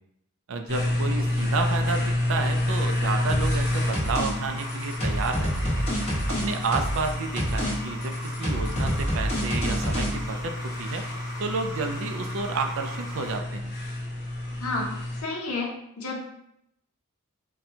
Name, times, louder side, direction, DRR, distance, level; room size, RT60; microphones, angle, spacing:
voice 1, 0.5-5.9 6.4-8.1 8.4-10.5 10.8-11.0 11.4-13.7, right 4 dB, 60° right, 5 dB, 0.4 m, -31 dB
sound 1, 0.7-15.2, left 1 dB, 45° left, 0.8 m, -30 dB
sound 2, 3.3-3.6 3.9-4.3 4.6-7.1 7.4-7.7 8.0-10.1, equal, 25° left, 1.1 m, -27 dB
sound 3, 3.6-13.3, left 1 dB, 5° right, 1.2 m, -40 dB
voice 2, 15.2-15.7 16.0-16.2, left 3 dB, 75° left, -1 dB, 0.8 m, -29 dB
4.1 x 2.2 x 2.7 m, 0.78 s
head